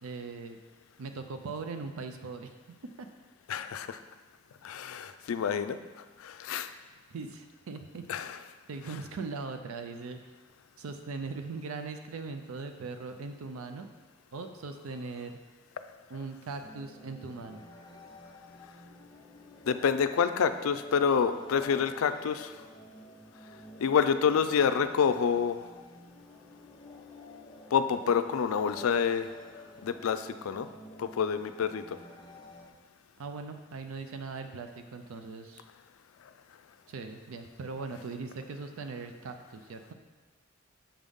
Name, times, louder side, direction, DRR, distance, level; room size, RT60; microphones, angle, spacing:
voice 1, 0.0-0.6 1.0-2.5 3.0-3.1 7.1-8.1 8.7-10.2 10.8-13.9 14.3-15.4 16.1-17.6 33.2-35.6 36.9-39.9, right 4 dB, 85° right, 7 dB, 0.5 m, -40 dB
voice 2, 3.5-4.0 4.6-5.8 6.2-6.7 8.1-8.3 19.7-22.5 23.8-25.6 27.7-29.3 29.8-30.7 31.0-32.0, left 6 dB, 80° left, 10 dB, 0.4 m, -27 dB
sound 1, 16.6-32.7, left 1 dB, 20° left, 0.7 m, -50 dB
7.2 x 5.3 x 3.6 m, 1.3 s
head